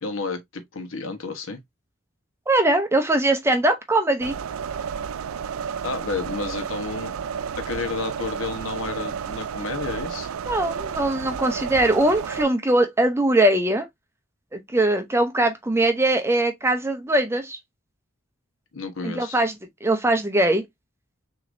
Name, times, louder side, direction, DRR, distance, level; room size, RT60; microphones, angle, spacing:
voice 1, 0.0-1.6 5.8-7.1 7.5-10.3 18.7-19.4, left 3 dB, 70° left, 1.2 m, -31 dB
voice 2, 2.5-4.4 10.5-13.9 14.5-17.6 19.0-19.5 19.8-20.6, right 1 dB, 10° right, 0.7 m, -21 dB
sound 1, 4.2-12.4, right 7 dB, 80° right, 0.4 m, -32 dB
6.3 x 2.9 x 2.6 m
head